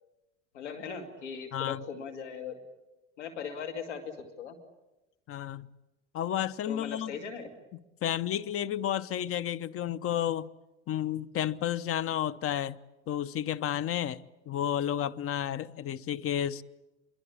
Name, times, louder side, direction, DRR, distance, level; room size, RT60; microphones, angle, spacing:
voice 1, 0.5-2.6 3.2-4.6 6.7-7.5, left 6 dB, 75° left, 2.5 m, -39 dB
voice 2, 5.3-5.7 6.1-7.2 7.7-10.5 10.9-12.8 13.1-16.6, left 10 dB, 40° left, 0.9 m, -31 dB
26.0 x 23.0 x 8.6 m
figure-of-eight pair, 70°, 35 cm